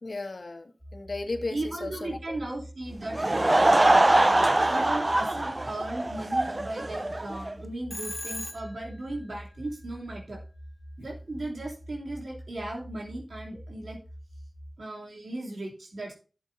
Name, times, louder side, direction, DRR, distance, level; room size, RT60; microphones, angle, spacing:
voice 1, 0.0-2.4, left 2 dB, 70° left, 5 dB, 1.8 m, -35 dB
sound 1, 0.8-14.8, equal, 5° right, 3.9 m, -46 dB
voice 2, 1.5-3.4 4.1-10.4 11.0-14.0 14.8-16.1, right 2 dB, 80° right, -2 dB, 3.0 m, -37 dB
Laughter / Crowd, 3.0-7.5, right 1 dB, 40° right, 0.6 m, -23 dB
Telephone, 7.9-9.0, left 1 dB, 30° left, 2.9 m, -37 dB
14.0 x 7.9 x 2.7 m, 0.35 s
cardioid pair, 40°, 0 cm